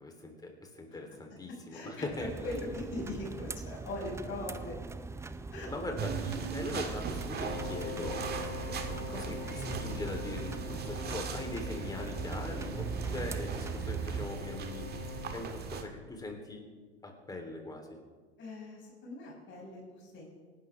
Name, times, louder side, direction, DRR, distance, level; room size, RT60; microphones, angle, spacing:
voice 1, 0.0-2.3 5.7-8.3 8.6-16.7 17.0-17.9, left 2 dB, 10° left, 3 dB, 3.5 m, -41 dB
voice 2, 1.7-4.8 5.5-5.7 9.0-9.1 18.4-20.4, left 2 dB, 35° left, -2 dB, 6.1 m, -40 dB
sound 1, 2.1-14.3, right 4 dB, 10° right, 0.6 m, -42 dB
sound 2, 6.0-15.8, right 6 dB, 30° right, 1.7 m, -39 dB
Wind instrument woodwind instrument, 7.4-15.5, left 4 dB, 85° left, 4.7 m, -44 dB
27.0 x 12.0 x 3.5 m, 1.5 s
hypercardioid pair, 85°, 32 cm